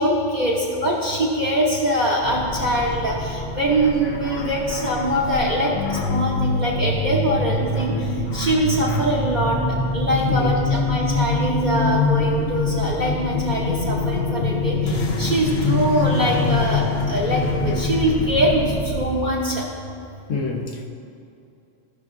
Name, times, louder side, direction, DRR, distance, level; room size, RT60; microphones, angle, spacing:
voice 1, 0.0-8.0 8.3-9.6 9.9-16.8 17.1-19.6, right 1 dB, 40° right, -5 dB, 1.1 m, -23 dB
sound 1, 2.2-19.1, right 1 dB, 70° right, 1.4 m, -33 dB
sound 2, 2.5-18.8, left 3 dB, 60° left, 1.0 m, -25 dB
voice 2, 20.3-20.9, left 3 dB, 90° left, 1 dB, 1.3 m, -27 dB
15.0 x 6.0 x 2.6 m, 2.6 s
omnidirectional pair, 1.3 m